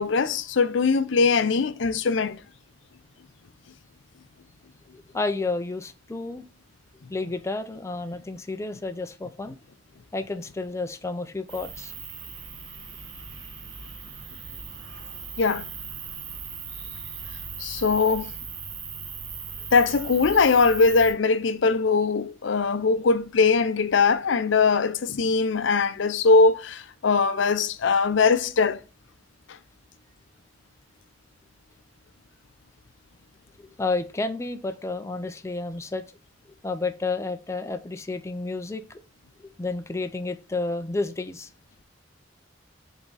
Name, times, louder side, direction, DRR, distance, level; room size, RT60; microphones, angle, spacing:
voice 1, 0.0-2.4 15.4-15.7 17.6-18.3 19.7-28.8, left 4 dB, 65° left, 0.5 m, -21 dB
voice 2, 4.9-6.4 7.1-9.6 10.1-11.9 33.6-36.1 36.6-39.0 39.6-41.5, left 3 dB, 15° left, 0.4 m, -31 dB
sound 1, 11.5-21.1, right 6 dB, 70° right, 1.4 m, -38 dB
7.1 x 3.6 x 3.9 m
head